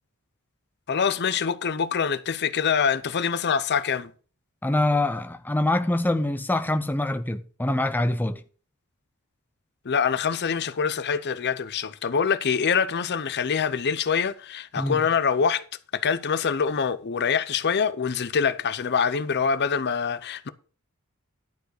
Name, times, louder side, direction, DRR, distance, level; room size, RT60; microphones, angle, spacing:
voice 1, 0.9-4.1 9.8-15.6 15.9-20.5, left 6 dB, 50° left, 0.6 m, -25 dB
voice 2, 4.6-8.4 14.8-15.0, left 1 dB, 10° left, 0.5 m, -25 dB
11.5 x 4.8 x 6.4 m
head